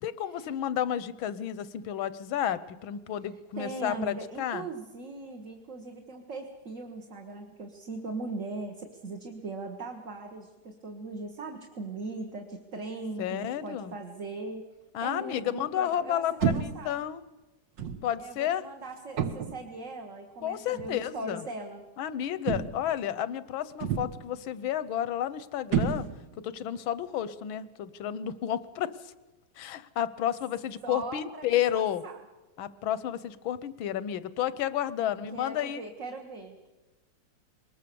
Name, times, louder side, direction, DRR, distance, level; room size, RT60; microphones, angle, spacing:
voice 1, 0.0-4.7 13.2-13.9 14.9-17.2 18.0-18.6 20.4-21.5 22.0-26.1 26.4-29.1 29.6-32.0 32.6-35.9, left 10 dB, 85° left, 16 dB, 1.7 m, -31 dB
voice 2, 3.6-14.6 15.0-17.0 18.2-21.8 30.8-31.5 31.7-32.2 35.0-36.7, right 3 dB, 40° right, 2 dB, 1.8 m, -39 dB
sound 1, 16.4-16.9 17.8-18.1 19.2-19.7 20.8-21.0 22.5-23.0 23.8-24.3 25.7-26.4, right 7 dB, 70° right, 1.9 m, -30 dB
22.0 x 20.0 x 6.9 m, 1.1 s
omnidirectional pair, 2.1 m